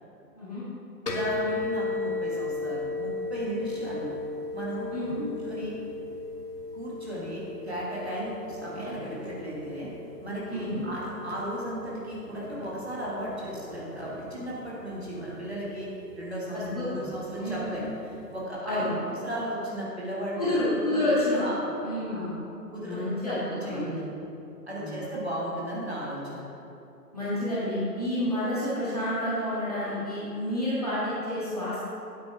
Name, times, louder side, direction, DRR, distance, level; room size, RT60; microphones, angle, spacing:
voice 1, 1.0-4.1 4.5-4.9 5.5-5.7 6.7-9.9 10.2-15.9 16.2-17.9 18.3-20.5 20.9-21.0 21.4-21.6 22.1-22.3 22.7-23.9 24.7-26.4, equal, 40° right, -6 dB, 1.8 m, -35 dB
sound 1, 1.1-18.4, left 3 dB, 65° left, 1.2 m, -37 dB
voice 2, 4.9-5.3 10.5-10.8 16.5-17.1 17.4-17.7 18.6-18.9 20.4-21.4 21.8-22.4 22.8-24.0 24.7-25.1 27.1-31.8, left 1 dB, 25° left, -11 dB, 1.8 m, -29 dB
9.4 x 8.5 x 3.4 m, 2.9 s
figure-of-eight pair, 180°, 49 cm